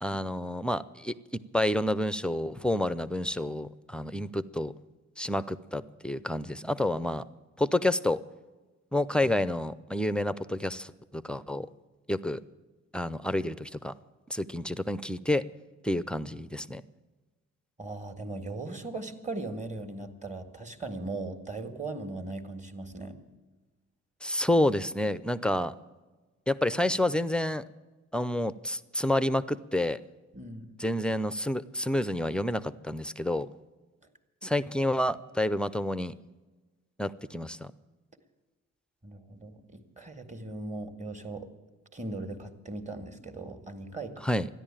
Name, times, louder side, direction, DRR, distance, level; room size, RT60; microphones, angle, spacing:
voice 1, 0.0-4.7 5.2-7.2 7.6-8.2 8.9-11.7 12.1-12.4 12.9-13.9 14.3-15.4 15.8-16.8 24.2-25.7 26.5-27.6 28.1-30.0 30.8-33.5 34.4-36.2 37.0-37.7 44.2-44.5, left 1 dB, 5° left, 15 dB, 0.5 m, -29 dB
voice 2, 17.8-23.2 30.3-30.7 39.0-41.5 41.9-44.3, right 2 dB, 25° right, 8 dB, 1.8 m, -38 dB
13.0 x 10.5 x 8.9 m, 1.2 s
cardioid pair, 90°, 30 cm